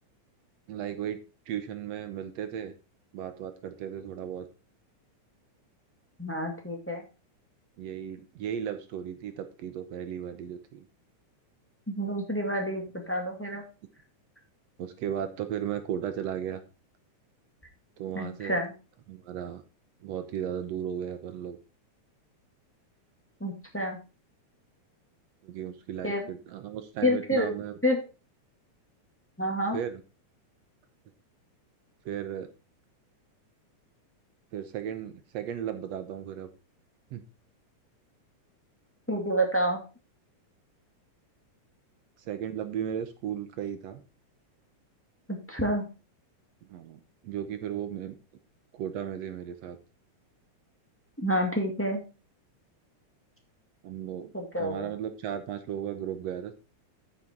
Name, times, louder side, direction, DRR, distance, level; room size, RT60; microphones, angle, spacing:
voice 1, 0.7-1.2 1.5-2.8 3.1-4.5 7.8-10.8 14.8-16.6 18.0-18.6 19.1-19.6 20.0-21.6 25.4-27.7 29.7-30.0 32.1-32.5 34.5-36.5 37.1-37.2 42.3-44.0 46.7-48.2 48.7-49.8 53.8-54.3 54.6-56.5, right 9 dB, 70° right, 9 dB, 1.9 m, -35 dB
voice 2, 6.2-7.0 11.9-13.6 18.1-18.7 23.4-24.0 26.0-26.2 27.0-27.5 27.8-28.0 29.4-29.8 39.1-39.8 45.3-45.8 51.2-52.0 54.3-54.9, equal, 5° left, 1 dB, 1.5 m, -28 dB
9.5 x 6.3 x 4.5 m, 0.32 s
omnidirectional pair, 3.5 m